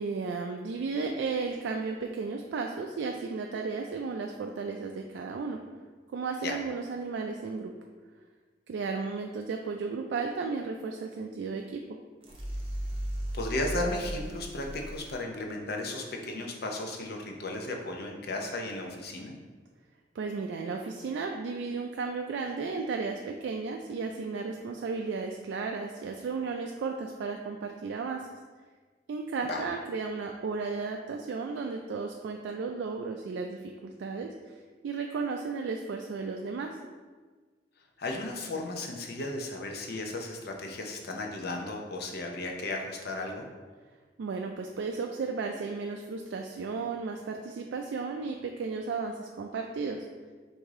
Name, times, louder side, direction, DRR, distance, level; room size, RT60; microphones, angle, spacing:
voice 1, 0.0-5.6 6.1-7.7 8.7-11.8 20.1-28.2 29.1-36.7 44.2-50.1, right 4 dB, 75° right, 2 dB, 0.3 m, -34 dB
sound 1, 12.2-15.2, equal, 30° right, 0.6 m, -36 dB
voice 2, 13.3-19.3 29.4-29.6 38.0-43.4, left 2 dB, 60° left, 1 dB, 0.6 m, -35 dB
4.8 x 2.6 x 3.6 m, 1.4 s
head